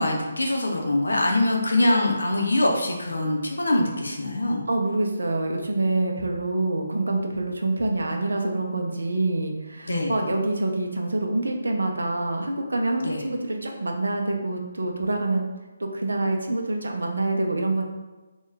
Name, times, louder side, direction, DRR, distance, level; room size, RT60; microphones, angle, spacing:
voice 1, 0.0-4.6 9.9-10.2 13.0-13.2, left 1 dB, 75° left, 0 dB, 0.7 m, -23 dB
voice 2, 4.7-15.4 15.8-17.9, right 2 dB, 70° right, 2 dB, 0.5 m, -26 dB
3.5 x 2.3 x 3.3 m, 1.2 s
figure-of-eight pair, 145°, 0 cm